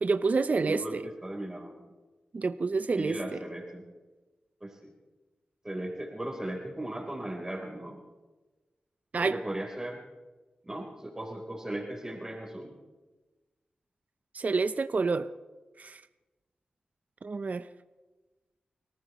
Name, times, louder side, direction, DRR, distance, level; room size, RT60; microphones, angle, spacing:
voice 1, 0.0-1.0 2.3-3.2 9.1-9.4 14.3-15.3 15.8-16.0 17.2-17.7, right 4 dB, 55° right, 10 dB, 0.6 m, -28 dB
voice 2, 0.6-1.8 2.9-3.8 4.6-4.9 5.6-8.0 9.2-10.0 10.6-12.7, right 1 dB, 20° right, 0 dB, 3.8 m, -37 dB
29.5 x 14.5 x 3.1 m, 1.2 s
cardioid pair, 40°, 3 cm